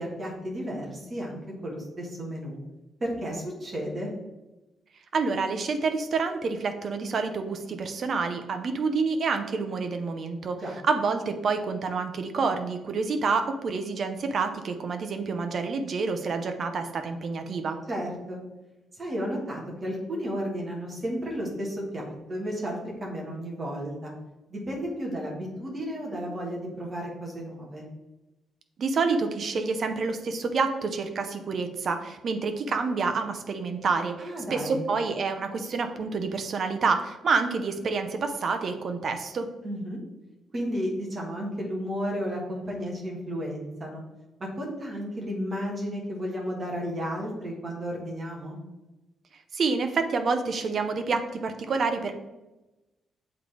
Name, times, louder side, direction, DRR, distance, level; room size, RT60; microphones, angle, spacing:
voice 1, 0.0-2.6 3.0-4.1 10.6-10.7 17.9-18.4 19.0-24.1 24.5-27.9 34.2-34.8 39.6-40.0 40.5-44.0 44.4-48.6, equal, 25° right, -2 dB, 1.5 m, -33 dB
voice 2, 5.1-17.8 28.8-39.5 49.5-52.1, right 4 dB, 40° right, 7 dB, 0.6 m, -28 dB
7.8 x 3.8 x 3.3 m, 1.0 s
cardioid pair, 170°, 0 cm